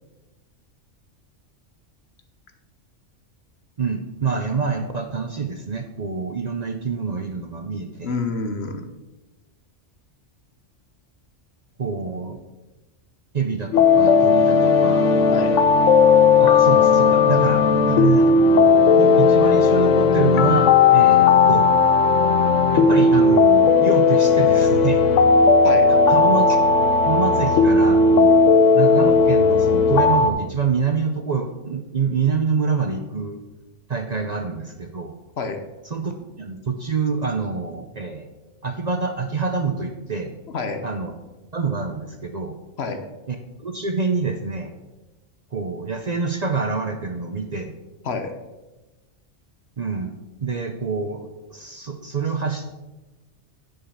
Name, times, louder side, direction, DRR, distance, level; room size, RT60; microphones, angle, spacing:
voice 1, 3.8-8.1 11.8-12.4 13.3-15.1 16.4-18.3 19.0-21.7 22.7-25.0 25.9-28.4 28.7-33.4 33.9-35.1 35.8-38.3 38.6-40.3 40.8-41.1 41.5-42.6 43.3-44.7 45.5-47.7 49.8-50.1 50.4-52.7, right 5 dB, 45° right, 5 dB, 0.7 m, -26 dB
voice 2, 8.0-8.9 15.3-15.6 25.6-25.9 35.4-35.6 40.5-40.8 42.8-43.0 48.0-48.3, left 4 dB, 60° left, 6 dB, 1.2 m, -27 dB
sound 1, 13.7-30.3, left 4 dB, 85° left, 1.1 m, -15 dB
10.0 x 5.5 x 5.6 m, 1.1 s
omnidirectional pair, 1.2 m